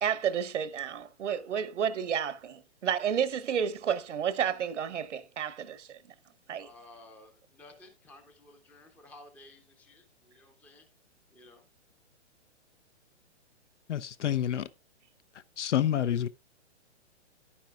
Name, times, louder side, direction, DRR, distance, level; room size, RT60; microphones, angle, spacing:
voice 1, 0.0-6.0 6.5-6.7, right 8 dB, 85° right, 1.0 m, -31 dB
voice 2, 6.6-10.9 11.3-11.6, left 2 dB, 5° left, 0.6 m, -54 dB
voice 3, 13.9-14.7 15.6-16.3, left 10 dB, 75° left, 0.7 m, -28 dB
11.0 x 10.0 x 2.3 m
hypercardioid pair, 150°, 35 cm